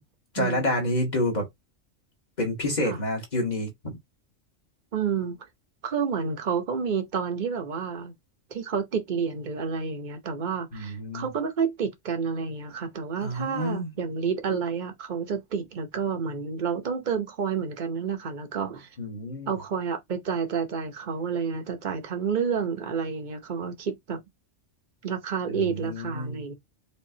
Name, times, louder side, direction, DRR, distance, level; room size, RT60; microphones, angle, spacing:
voice 1, 0.3-1.5 2.4-3.7 10.7-11.3 13.2-13.9 19.0-19.6 25.5-26.4, left 1 dB, 35° left, 1.5 m, -28 dB
voice 2, 4.9-5.4 5.8-8.1 8.5-18.9 19.5-24.2 25.0-26.5, right 6 dB, 45° right, 0.9 m, -29 dB
5.2 x 2.6 x 2.7 m
omnidirectional pair, 1.3 m